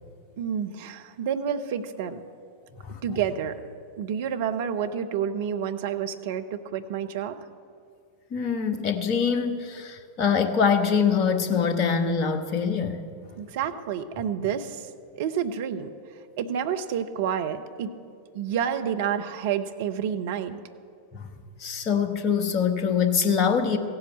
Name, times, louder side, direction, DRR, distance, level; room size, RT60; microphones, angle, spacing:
voice 1, 0.4-2.2 3.0-3.6 4.0-7.4 13.4-14.9 15.1-15.9 16.4-17.9 18.3-20.6, right 8 dB, 50° right, 7 dB, 0.8 m, -29 dB
voice 2, 8.3-13.0 21.1-21.2 21.6-23.8, left 6 dB, 40° left, 8 dB, 1.2 m, -24 dB
15.5 x 8.0 x 8.5 m, 2.3 s
figure-of-eight pair, 90°, 0 cm